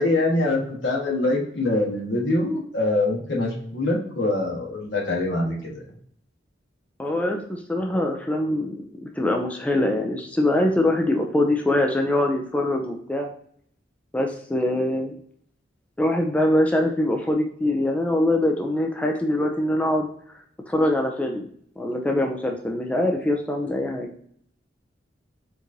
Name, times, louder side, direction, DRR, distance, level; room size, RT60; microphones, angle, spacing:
voice 1, 0.0-5.8, left 2 dB, 70° left, -2 dB, 1.2 m, -24 dB
voice 2, 7.0-8.8 9.1-13.3 14.1-15.2 16.0-20.1 20.7-21.5 21.8-24.1, left 1 dB, 10° left, 1 dB, 0.3 m, -23 dB
4.5 x 2.5 x 2.6 m, 0.64 s
head